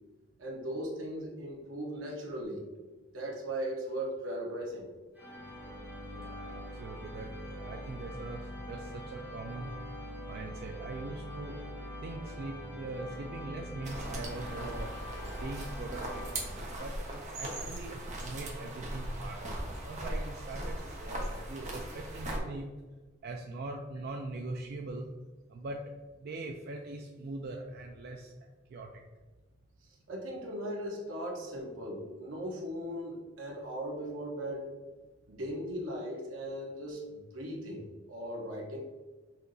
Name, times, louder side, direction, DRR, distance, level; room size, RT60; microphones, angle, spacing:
voice 1, 0.4-2.7 3.1-4.9 29.8-34.7 35.3-38.8, equal, 80° right, -2 dB, 1.1 m, -38 dB
sound 1, 5.1-17.1, equal, 10° right, 1.3 m, -43 dB
voice 2, 6.1-9.7 10.3-11.6 12.0-14.9 15.3-16.3 16.8-22.7 23.2-25.1 25.5-29.0, right 2 dB, 50° right, 2 dB, 0.4 m, -42 dB
sound 2, 13.8-22.4, right 1 dB, 35° right, 0.9 m, -39 dB
5.9 x 2.8 x 2.6 m, 1.3 s
head